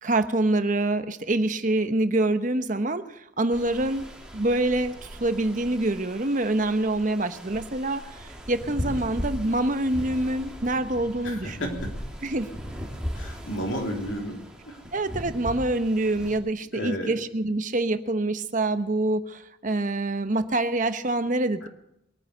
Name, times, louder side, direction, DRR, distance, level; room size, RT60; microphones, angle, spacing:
voice 1, 0.0-4.1 4.3-11.8 12.2-12.5 14.9-21.7, right 2 dB, 40° right, 10 dB, 1.0 m, -26 dB
sound 1, 3.5-16.4, equal, 5° right, 3.0 m, -38 dB
voice 2, 11.2-12.0 13.1-14.8 16.7-17.2 21.6-21.7, equal, 85° left, 2 dB, 3.5 m, -32 dB
22.0 x 9.7 x 6.7 m, 0.78 s
head